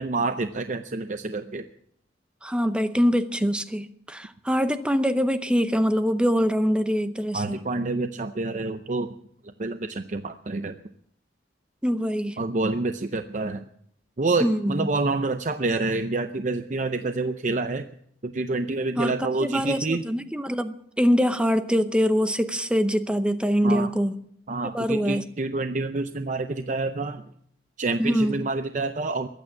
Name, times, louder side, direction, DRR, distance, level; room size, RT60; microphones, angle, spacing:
voice 1, 0.0-1.7 7.3-9.1 9.6-10.8 12.4-13.6 14.2-17.9 18.2-20.0 23.6-23.9 24.5-27.2 27.8-29.3, right 3 dB, 45° right, 9 dB, 0.6 m, -27 dB
voice 2, 2.4-7.6 11.8-12.4 14.4-14.9 19.0-24.1 24.7-25.2 28.0-28.5, equal, 5° right, 10 dB, 0.7 m, -24 dB
21.5 x 8.9 x 7.2 m, 0.69 s
head